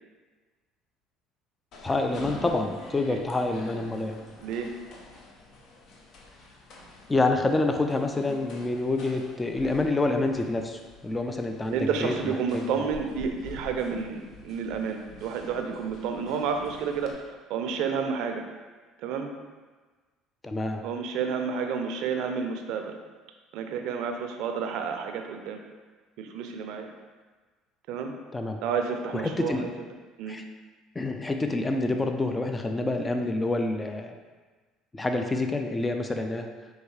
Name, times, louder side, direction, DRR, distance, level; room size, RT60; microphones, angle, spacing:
sound 1, 1.7-17.1, left 3 dB, 60° left, 0.6 m, -47 dB
voice 1, 1.8-4.2 7.1-12.9 20.4-20.8 28.3-28.6 29.1-29.7 30.3-30.4 31.0-34.1 34.9-36.5, left 2 dB, 20° left, 5 dB, 0.4 m, -27 dB
voice 2, 4.4-4.7 11.7-17.2 17.5-18.4 19.0-19.3 20.8-22.9 23.5-25.6 26.2-26.9 27.9-28.1 28.6-29.7 30.2-30.4, right 6 dB, 70° right, 5 dB, 0.4 m, -30 dB
4.5 x 2.7 x 3.1 m, 1.4 s
hypercardioid pair, 65°, 0 cm